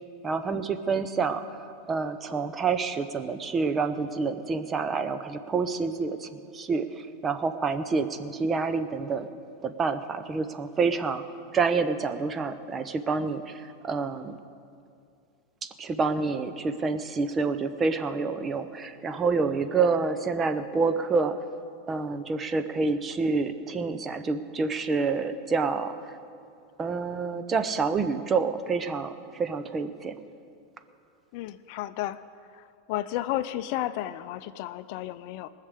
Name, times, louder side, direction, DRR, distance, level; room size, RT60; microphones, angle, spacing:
voice 1, 0.2-9.3 9.6-11.2 11.5-14.4 15.6-21.4 21.9-26.0 26.8-30.1, right 4 dB, 25° right, 10 dB, 0.9 m, -28 dB
voice 2, 31.3-32.2 32.5-35.5, left 14 dB, 60° left, 13 dB, 0.5 m, -32 dB
19.0 x 6.6 x 8.3 m, 2.4 s
hypercardioid pair, 100°, 0 cm